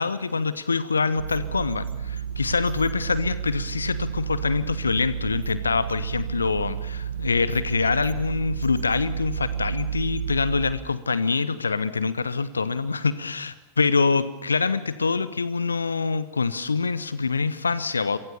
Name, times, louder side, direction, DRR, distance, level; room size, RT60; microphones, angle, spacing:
voice 1, 0.0-18.2, left 4 dB, 75° left, 16 dB, 1.1 m, -25 dB
sound 1, 1.2-10.7, right 8 dB, 70° right, 1.8 m, -31 dB
29.5 x 23.5 x 6.9 m, 1.0 s
figure-of-eight pair, 90°, 0 cm